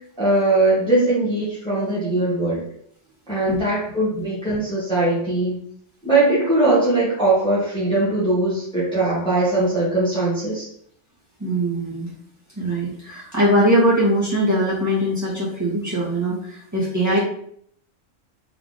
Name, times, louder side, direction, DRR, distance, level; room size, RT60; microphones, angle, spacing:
voice 1, 0.2-2.7 3.3-5.6 6.0-10.7, right 2 dB, 5° left, -9 dB, 1.3 m, -20 dB
voice 2, 11.4-12.1 12.6-17.2, right 1 dB, 15° right, -7 dB, 1.6 m, -21 dB
3.8 x 3.4 x 3.8 m, 0.64 s
omnidirectional pair, 1.2 m